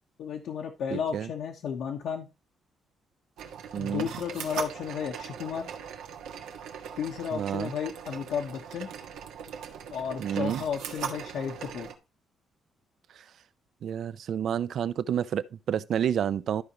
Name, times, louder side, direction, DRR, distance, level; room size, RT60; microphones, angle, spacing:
voice 1, 0.2-2.3 3.8-5.7 7.0-8.9 9.9-11.9, left 7 dB, 70° left, 1.3 m, -33 dB
voice 2, 0.9-1.3 3.7-4.1 7.3-7.7 10.2-10.6 13.8-16.6, right 9 dB, 60° right, 0.5 m, -29 dB
sound 1, 3.4-11.9, right 8 dB, 90° right, 1.5 m, -40 dB
13.5 x 5.1 x 2.9 m
cardioid pair, 150°, 0 cm